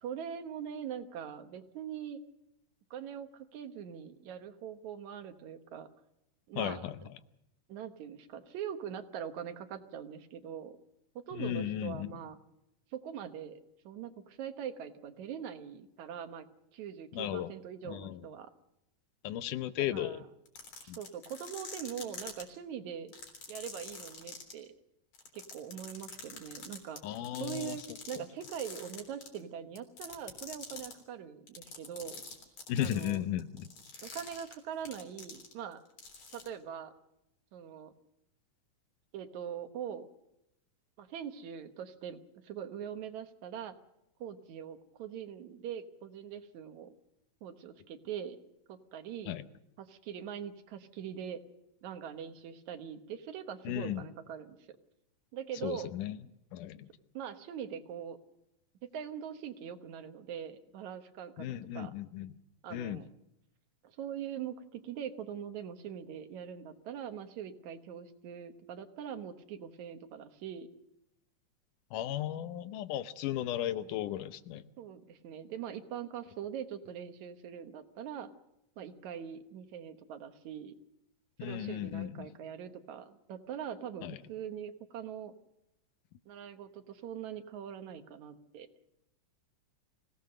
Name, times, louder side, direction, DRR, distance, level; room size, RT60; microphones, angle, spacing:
voice 1, 0.0-2.2 2.9-5.9 6.5-6.9 7.7-10.8 11.3-12.4 12.9-13.6 13.9-16.5 16.7-18.5 19.9-20.3 20.8-23.1 23.5-24.7 25.3-32.2 32.8-33.2 34.0-35.8 36.3-36.9 37.5-37.9 39.1-40.1 41.0-43.7 44.2-46.9 47.4-48.4 48.7-49.3 49.8-51.4 51.8-54.8 55.3-55.9 57.1-58.2 58.9-61.5 61.7-61.9 62.6-63.1 63.8-70.7 74.8-78.3 78.8-80.7 81.4-85.3 86.3-88.7, right 8 dB, 70° right, 8 dB, 2.4 m, -42 dB
voice 2, 6.6-7.0 11.3-12.1 17.1-17.5 17.9-18.2 19.2-20.2 20.9-21.0 27.0-27.8 32.7-33.7 49.3-49.5 53.7-54.1 55.6-56.2 56.5-56.9 61.4-62.3 62.7-63.0 71.9-74.7 81.4-82.3 84.0-84.2, left 12 dB, 85° left, 12 dB, 2.4 m, -35 dB
sound 1, 20.5-22.4 23.1-24.5 25.1-28.2 28.4-29.4 29.8-30.9 31.5-35.7 36.0-36.5, left 5 dB, 60° left, 4.8 m, -45 dB
25.0 x 17.5 x 6.6 m, 0.84 s
omnidirectional pair, 3.6 m